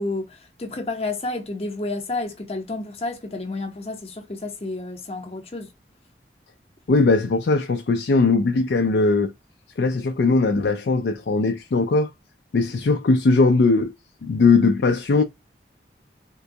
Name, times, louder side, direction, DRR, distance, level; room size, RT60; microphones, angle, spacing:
voice 1, 0.0-5.7, left 2 dB, 35° left, 0.8 m, -30 dB
voice 2, 6.9-9.3 9.8-12.1 12.5-13.9 14.2-15.2, left 3 dB, 75° left, 0.4 m, -19 dB
3.7 x 2.2 x 2.6 m
head